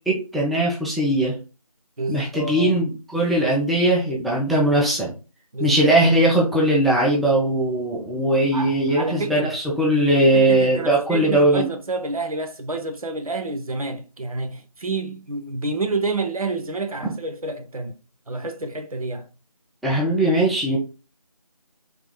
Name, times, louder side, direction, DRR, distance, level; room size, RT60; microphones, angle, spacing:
voice 1, 0.1-1.4 2.1-5.1 5.6-11.7 19.8-20.8, right 1 dB, ahead, 0.3 m, -20 dB
voice 2, 2.0-2.7 5.5-5.8 8.5-9.5 10.3-18.0 18.3-19.3, right 3 dB, 65° right, 0.6 m, -29 dB
3.3 x 2.2 x 3.2 m
figure-of-eight pair, 175°, 20 cm